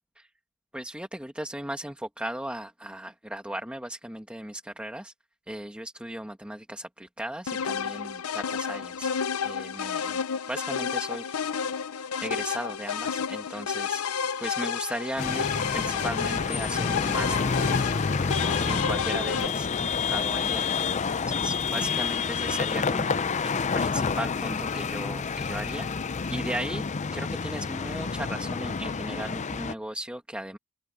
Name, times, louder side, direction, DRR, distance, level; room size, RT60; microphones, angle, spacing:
voice 1, 0.7-5.1 5.5-9.1 9.4-10.2 10.5-11.3 12.2-14.0 14.4-20.9 21.1-25.9 26.3-26.8 27.1-30.6, right 1 dB, 5° right, 1.6 m, -37 dB
sound 1, 7.5-19.5, left 7 dB, 80° left, 0.7 m, -31 dB
sound 2, 15.2-29.7, left 5 dB, 35° left, 0.5 m, -28 dB
open air
head